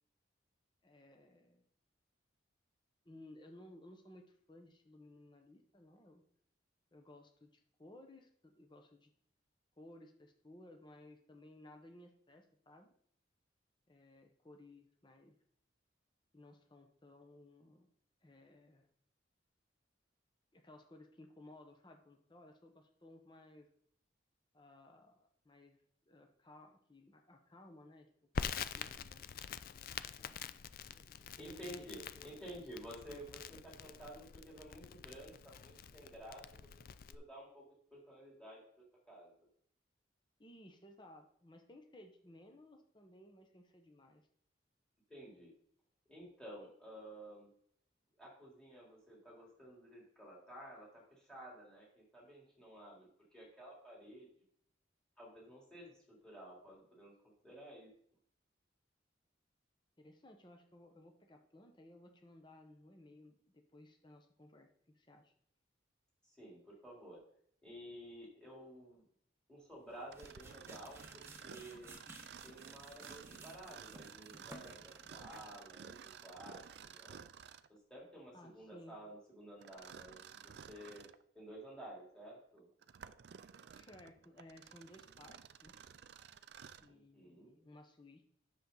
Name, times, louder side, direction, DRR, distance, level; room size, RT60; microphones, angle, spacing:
voice 1, 0.8-1.7 3.0-6.2 6.9-9.1 9.8-12.9 13.9-15.4 16.3-17.9 18.2-18.9 20.5-23.7 24.5-25.8 26.1-28.1 28.5-29.3 30.2-30.4 30.9-31.8 32.2-32.4 40.4-44.3 60.0-65.3 78.3-79.0 83.7-85.8 86.8-88.3, left 1 dB, 25° left, 4 dB, 1.0 m, -59 dB
Crackle, 28.3-37.1, left 7 dB, 50° left, 0.4 m, -46 dB
voice 2, 31.4-36.4 37.1-37.7 37.9-38.6 39.1-39.5 45.1-45.5 46.1-47.5 48.2-54.3 55.2-57.1 57.4-57.9 66.2-67.2 67.6-69.0 69.5-71.9 72.4-77.2 77.7-81.1 81.3-82.7 86.9-87.6, right 1 dB, 5° left, -4 dB, 3.5 m, -53 dB
sound 1, 69.8-75.6, right 2 dB, 15° right, 1.0 m, -57 dB
Mechanisms, 70.1-77.8 79.6-81.2 81.8-81.9 82.6-86.9, right 7 dB, 55° right, 0.4 m, -54 dB
10.0 x 6.9 x 3.9 m, 0.65 s
head